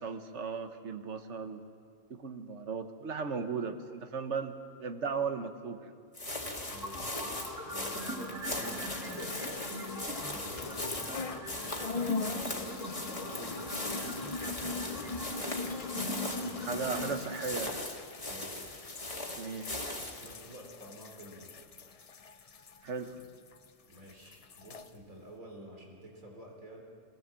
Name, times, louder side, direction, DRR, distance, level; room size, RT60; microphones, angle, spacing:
voice 1, 0.0-1.6 2.1-4.5 4.8-5.9 16.6-17.8 19.4-19.8 22.8-23.2, right 5 dB, 60° right, 8 dB, 1.4 m, -36 dB
sound 1, 6.1-20.3, left 1 dB, 25° left, 1.9 m, -39 dB
sound 2, 6.4-17.2, equal, 15° right, 2.9 m, -42 dB
voice 2, 6.7-9.7 10.0-12.7 13.1-16.8 18.2-18.6 20.0-21.5 23.9-26.8, equal, 85° right, 0 dB, 3.9 m, -50 dB
sound 3, 8.6-11.5 11.8-23.7 23.9-24.9, left 4 dB, 45° left, 0.5 m, -41 dB
22.0 x 18.0 x 7.6 m, 2.2 s
omnidirectional pair, 1.4 m